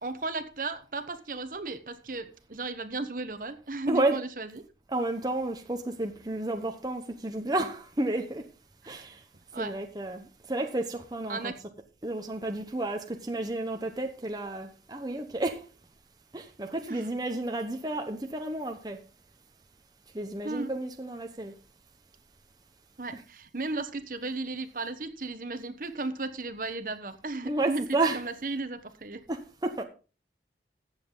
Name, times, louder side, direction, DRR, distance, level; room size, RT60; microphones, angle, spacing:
voice 1, 0.0-4.6 8.8-9.0 9.5-9.8 11.3-11.5 16.9-17.1 20.4-20.7 23.0-29.2, right 3 dB, 50° right, 1.1 m, -35 dB
voice 2, 3.9-4.2 4.9-8.4 8.9-9.2 9.6-11.5 12.0-15.6 16.3-19.0 20.1-21.5 23.1-23.2 27.4-28.2 29.3-29.8, right 2 dB, 20° right, 0.9 m, -31 dB
15.0 x 7.5 x 3.8 m
head